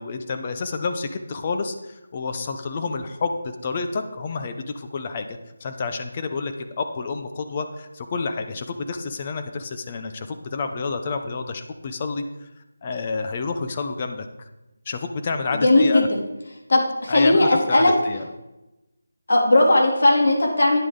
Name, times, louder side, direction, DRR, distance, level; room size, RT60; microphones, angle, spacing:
voice 1, 0.0-5.3 5.6-12.5 12.8-14.3 14.9-16.1 17.1-18.3, left 4 dB, 30° left, 7 dB, 0.7 m, -29 dB
voice 2, 15.5-16.2 16.7-17.9 19.3-20.8, left 2 dB, 65° left, -1 dB, 2.8 m, -17 dB
9.7 x 8.4 x 3.8 m, 0.98 s
figure-of-eight pair, 170°, 0 cm